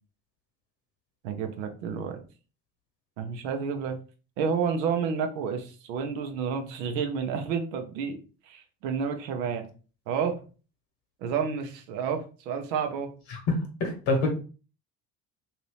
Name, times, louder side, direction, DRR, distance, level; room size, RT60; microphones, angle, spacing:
voice 1, 1.2-2.2 3.2-4.0 4.4-8.2 8.4-9.7 10.1-10.3 11.2-13.1, right 6 dB, 85° right, 6 dB, 0.7 m, -30 dB
voice 2, 13.3-14.3, left 3 dB, 70° left, 4 dB, 1.2 m, -26 dB
2.8 x 2.8 x 3.1 m, 0.36 s
hypercardioid pair, 55°, 49 cm